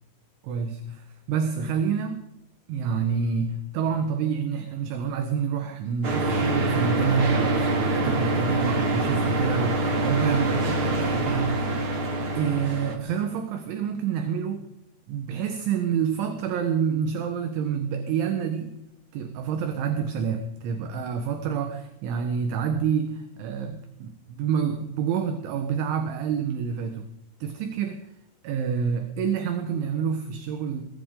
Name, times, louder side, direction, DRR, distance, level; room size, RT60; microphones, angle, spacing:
voice 1, 0.4-2.3 2.7-11.7 12.4-14.7 15.1-18.7 19.1-27.1 27.4-28.1 28.4-30.8, right 7 dB, 75° right, 7 dB, 3.3 m, -28 dB
sound 1, 6.0-12.9, right 2 dB, 50° right, 1.5 m, -25 dB
21.0 x 16.0 x 3.8 m, 0.87 s
omnidirectional pair, 6.0 m